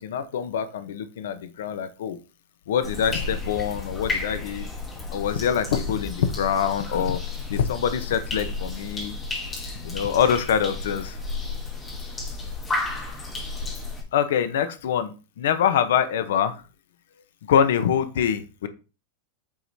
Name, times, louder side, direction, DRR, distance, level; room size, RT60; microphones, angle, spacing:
voice 1, 0.0-2.2 2.7-4.7 5.1-7.2 7.5-9.1 9.8-11.2 14.1-16.6 17.5-18.7, left 8 dB, 80° left, 10 dB, 1.0 m, -24 dB
sound 1, 2.8-14.0, left 3 dB, 10° left, 1.2 m, -32 dB
8.6 x 4.7 x 2.8 m, 0.32 s
supercardioid pair, 170°, 0 cm